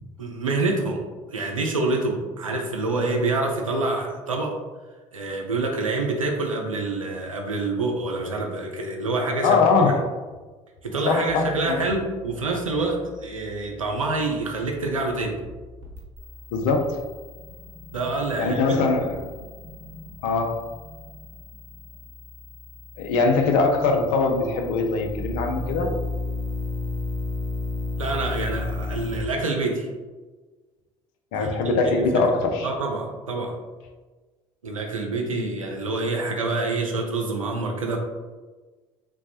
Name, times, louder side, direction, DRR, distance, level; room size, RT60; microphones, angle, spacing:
voice 1, 0.2-1.0 1.3-4.6 5.1-10.0 10.8-15.4 17.9-19.1 28.0-29.9 31.4-32.1 32.6-33.5 34.6-38.0, right 2 dB, 85° right, 1 dB, 0.4 m, -27 dB
voice 2, 9.4-10.1 11.1-11.8 16.5-17.0 18.4-19.2 20.2-20.7 23.0-25.9 31.3-32.7, left 4 dB, 55° left, 3 dB, 0.5 m, -22 dB
sound 1, 11.3-29.2, left 2 dB, 55° right, 0.8 m, -35 dB
3.2 x 2.0 x 2.8 m, 1.3 s
figure-of-eight pair, 60°, 17 cm